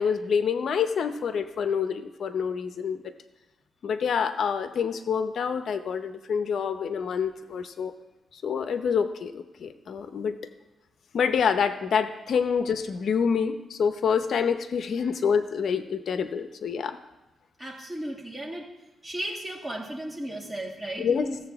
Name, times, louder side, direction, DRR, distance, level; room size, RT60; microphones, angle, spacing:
voice 1, 0.0-3.1 3.8-7.9 8.3-10.3 11.1-17.0 21.0-21.3, left 6 dB, 65° left, 9 dB, 0.7 m, -27 dB
voice 2, 17.6-18.7 19.0-21.4, right 1 dB, 10° right, -1 dB, 2.1 m, -35 dB
16.0 x 7.5 x 3.5 m, 1.0 s
cardioid pair, 100°, 0 cm